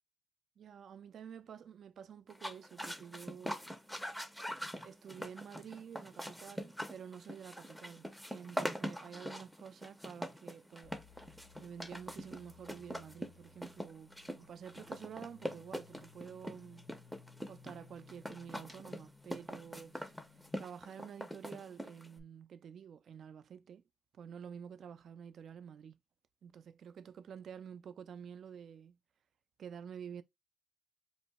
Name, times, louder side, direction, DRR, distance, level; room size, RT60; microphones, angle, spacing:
voice 1, 0.6-3.6 4.8-11.0 11.6-16.9 17.5-20.1 20.6-23.8 24.1-26.0 26.4-29.0 29.6-30.2, right 8 dB, 60° right, 0.3 m, -50 dB
sound 1, 2.3-22.2, equal, ahead, 0.5 m, -43 dB
sound 2, 10.8-20.6, left 6 dB, 85° left, 0.5 m, -62 dB
2.6 x 2.1 x 4.0 m
cardioid pair, 90°, 0 cm